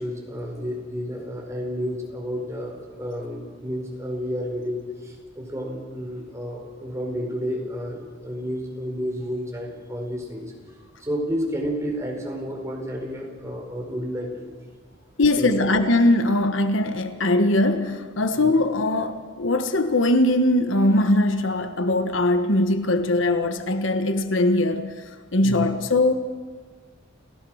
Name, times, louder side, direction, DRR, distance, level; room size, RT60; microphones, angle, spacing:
voice 1, 0.0-10.5 11.0-14.5 15.4-15.9 18.4-18.5 25.4-25.7, equal, 15° right, 0 dB, 4.9 m, -31 dB
voice 2, 15.2-24.9 25.3-26.2, left 1 dB, 75° left, 9 dB, 1.4 m, -21 dB
29.5 x 15.5 x 6.4 m, 1.5 s
head